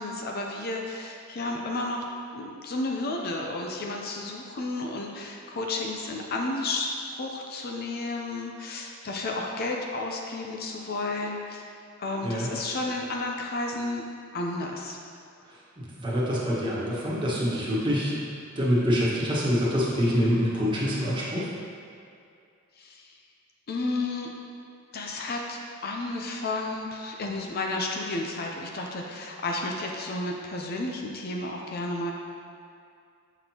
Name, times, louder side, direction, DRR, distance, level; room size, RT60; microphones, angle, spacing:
voice 1, 0.0-2.0 2.3-11.7 12.0-14.0 14.3-15.0 22.8-23.1 23.7-24.3 24.9-32.1, left 2 dB, 50° left, 0 dB, 0.5 m, -32 dB
voice 2, 15.8-18.3 18.5-21.5, equal, 25° right, -7 dB, 1.4 m, -26 dB
7.0 x 5.9 x 2.9 m, 2.4 s
head